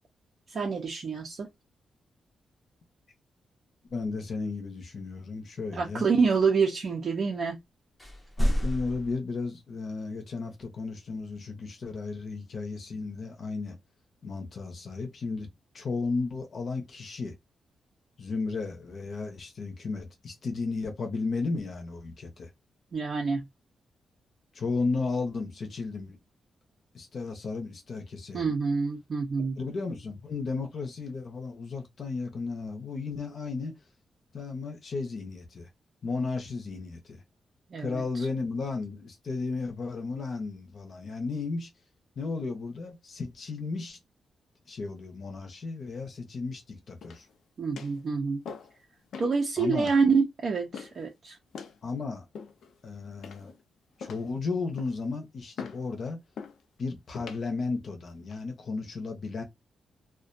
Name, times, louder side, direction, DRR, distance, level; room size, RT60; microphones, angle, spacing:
voice 1, 0.5-1.5 5.7-7.6 22.9-23.4 28.3-29.6 37.7-38.0 47.6-48.4 49.2-51.4, right 5 dB, 40° right, 0.5 m, -27 dB
voice 2, 3.9-6.1 8.4-13.8 14.2-15.5 15.7-17.3 18.2-22.5 24.5-26.2 26.9-28.5 29.6-33.7 34.3-35.7 36.0-37.2 37.8-41.7 42.2-44.0 44.7-47.3 49.6-49.9 51.8-52.3 52.8-53.5 54.0-56.2 56.8-59.4, left 4 dB, 45° left, 0.7 m, -34 dB
sound 1, 8.0-9.2, equal, 10° left, 0.6 m, -28 dB
sound 2, 47.0-47.4 47.8-48.0 48.4-48.8 49.1-49.4 49.8-50.0 50.7-51.0 51.5-51.8 52.3-52.8 53.2-53.6 54.0-54.3 54.8-55.1 55.6-55.8 56.4-56.6 57.1-57.4 58.1-58.4, left 6 dB, 75° left, 0.5 m, -42 dB
2.4 x 2.2 x 2.5 m
wide cardioid pair, 175°, 0 cm